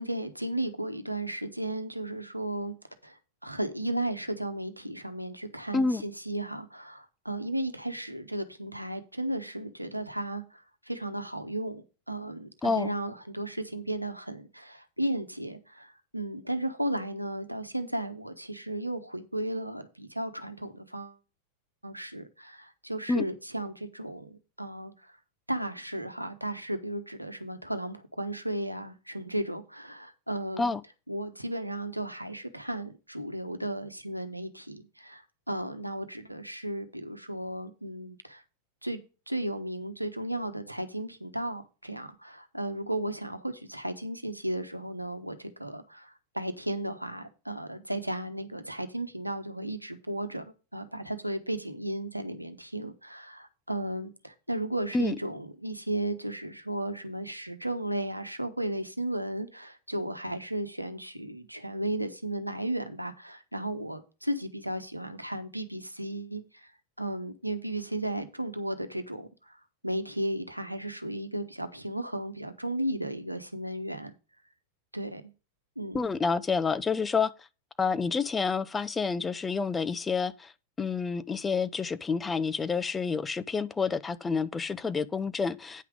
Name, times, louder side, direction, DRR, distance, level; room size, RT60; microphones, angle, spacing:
voice 1, 0.0-2.7 3.0-21.2 21.8-24.9 25.5-30.7 31.1-35.2 35.5-38.4 38.8-39.0 39.3-66.4 67.0-69.6 69.8-74.2 74.9-75.2 75.8-76.0, right 1 dB, 90° right, 1.1 m, -34 dB
voice 2, 12.6-12.9 23.1-23.2 30.6-30.8 54.9-55.2 75.9-77.3 77.8-80.5 80.8-85.8, left 4 dB, 15° left, 0.7 m, -28 dB
9.5 x 5.9 x 5.1 m
figure-of-eight pair, 90°, 0 cm